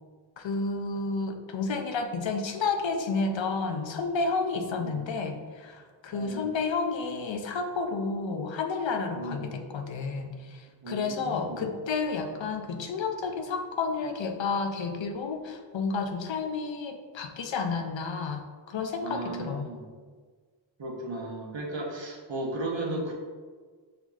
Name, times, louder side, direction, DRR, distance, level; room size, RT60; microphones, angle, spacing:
voice 1, 0.4-18.4 18.7-19.7, left 4 dB, 70° left, 5 dB, 0.5 m, -31 dB
voice 2, 4.7-5.0 6.1-6.5 9.1-9.5 10.8-11.7 19.0-19.9 20.8-23.1, right 1 dB, 70° right, -1 dB, 0.9 m, -35 dB
6.2 x 2.8 x 2.3 m, 1.5 s
wide cardioid pair, 75°, 47 cm